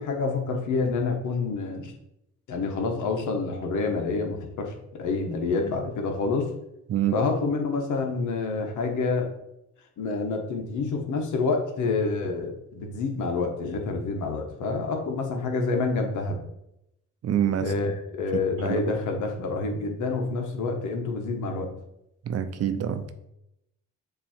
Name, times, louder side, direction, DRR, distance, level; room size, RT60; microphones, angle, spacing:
voice 1, 0.0-1.9 2.5-6.5 7.1-9.3 10.0-16.4 17.6-21.7, left 4 dB, 80° left, 3 dB, 1.3 m, -28 dB
voice 2, 6.9-7.2 17.2-18.0 18.3-18.9 22.2-23.1, right 9 dB, 55° right, 10 dB, 0.7 m, -27 dB
7.4 x 3.1 x 4.4 m, 0.83 s
cardioid pair, 90°, 30 cm